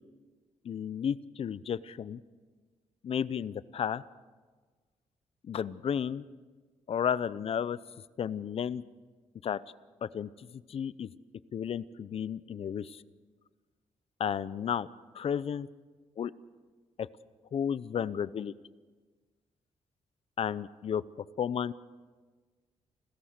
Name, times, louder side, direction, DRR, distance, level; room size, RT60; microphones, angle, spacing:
voice 1, 0.6-2.2 3.0-4.0 5.4-6.3 6.9-7.8 8.2-8.8 9.4-9.6 10.0-11.1 11.5-13.0 14.2-14.9 15.1-15.7 16.2-16.3 17.0-17.1 17.5-18.5 20.4-21.0 21.4-21.7, left 8 dB, 55° left, 18 dB, 0.7 m, -32 dB
30.0 x 14.0 x 6.6 m, 1.4 s
cardioid pair, 110°, 12 cm